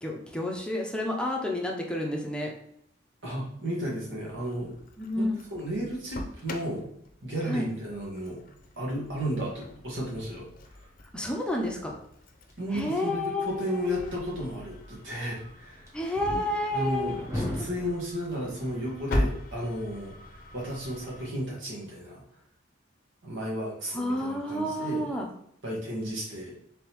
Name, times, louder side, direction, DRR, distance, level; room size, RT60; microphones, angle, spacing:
voice 1, 0.0-2.5 5.0-5.4 7.5-7.7 11.1-12.0 12.7-14.1 15.9-17.2 17.6-17.7 23.9-25.3, left 1 dB, 5° left, 0 dB, 0.5 m, -30 dB
voice 2, 3.2-4.7 5.1-6.8 7.2-8.4 8.8-10.9 12.6-15.9 16.3-22.2 23.2-25.1 25.6-26.5, equal, 90° right, -4 dB, 1.7 m, -34 dB
Engine starting, 4.3-21.3, left 1 dB, 50° left, 0.5 m, -40 dB
sound 1, 11.4-17.9, left 1 dB, 15° right, 1.0 m, -40 dB
3.8 x 3.6 x 3.0 m, 0.71 s
head